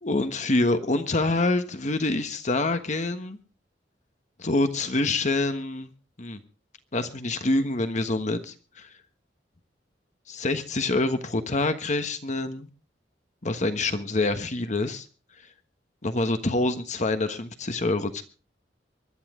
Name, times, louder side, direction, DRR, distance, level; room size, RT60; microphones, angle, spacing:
voice 1, 0.0-3.4 4.4-5.9 6.2-6.4 6.9-8.9 10.3-12.7 13.4-15.1 16.0-18.2, left 2 dB, 40° left, 9 dB, 1.3 m, -26 dB
24.5 x 11.5 x 3.7 m, 0.34 s
head